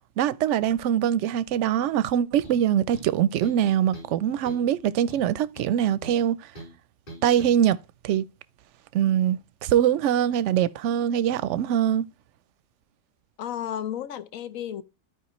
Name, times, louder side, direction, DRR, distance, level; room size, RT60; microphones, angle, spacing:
voice 1, 0.2-6.4 7.2-7.8 8.0-8.2 8.9-12.0, right 10 dB, 65° right, 0.8 m, -23 dB
sound 1, 2.4-2.6 2.9-3.7 3.9-4.2 4.5-4.7 5.1-6.2 6.6-6.7 7.1-7.6, right 1 dB, 35° left, 4.6 m, -43 dB
voice 2, 13.4-14.8, left 10 dB, 75° left, 1.1 m, -33 dB
13.0 x 5.0 x 3.0 m
omnidirectional pair, 1.5 m